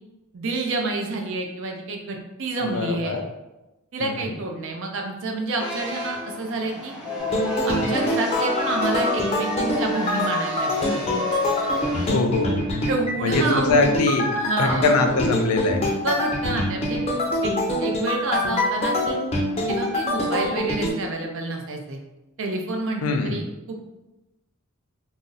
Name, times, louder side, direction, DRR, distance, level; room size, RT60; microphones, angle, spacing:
voice 1, 0.3-3.1 3.9-6.9 7.7-11.0 12.9-13.8 14.3-14.9 16.0-17.0 17.4-17.5 17.8-19.2 19.7-22.0 22.4-23.8, right 2 dB, 65° right, 2 dB, 0.5 m, -28 dB
voice 2, 2.7-3.2 4.0-4.1 12.1-12.6 13.2-14.3 14.6-15.9 23.0-23.4, left 3 dB, 90° left, 4 dB, 0.4 m, -22 dB
sound 1, 5.6-12.1, left 1 dB, 5° right, 0.7 m, -31 dB
sound 2, 7.2-20.9, left 1 dB, 30° left, 0.5 m, -25 dB
2.5 x 2.0 x 3.8 m, 1.0 s
head